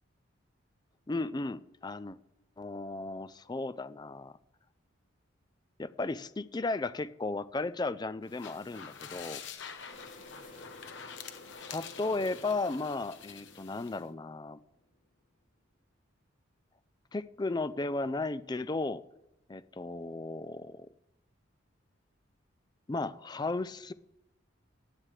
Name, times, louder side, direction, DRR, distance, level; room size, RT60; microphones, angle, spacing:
voice 1, 1.1-2.2 2.6-4.3 5.8-9.4 11.7-14.6 17.1-19.0 19.5-20.9 22.9-23.9, left 3 dB, 20° left, 15 dB, 0.3 m, -35 dB
sound 1, 8.2-14.0, left 7 dB, 60° left, 1.1 m, -47 dB
sound 2, 9.8-15.3, left 1 dB, 40° left, 4.8 m, -54 dB
17.5 x 11.5 x 3.3 m, 0.90 s
head